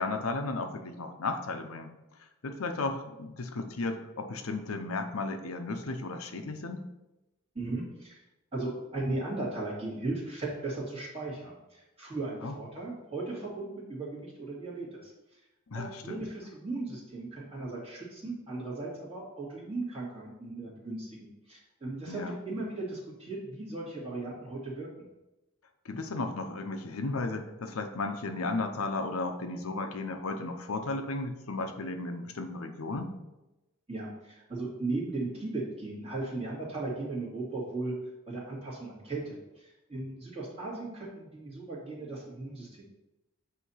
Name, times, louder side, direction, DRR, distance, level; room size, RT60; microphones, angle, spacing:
voice 1, 0.0-1.9 2.4-6.9 12.4-12.6 15.7-16.2 22.1-22.3 25.8-33.2, left 3 dB, 90° left, 6 dB, 0.7 m, -34 dB
voice 2, 7.5-8.2 8.5-15.1 15.7-25.1 33.9-37.9 38.3-42.8, right 2 dB, 30° right, -6 dB, 2.2 m, -37 dB
8.3 x 2.9 x 5.6 m, 0.98 s
head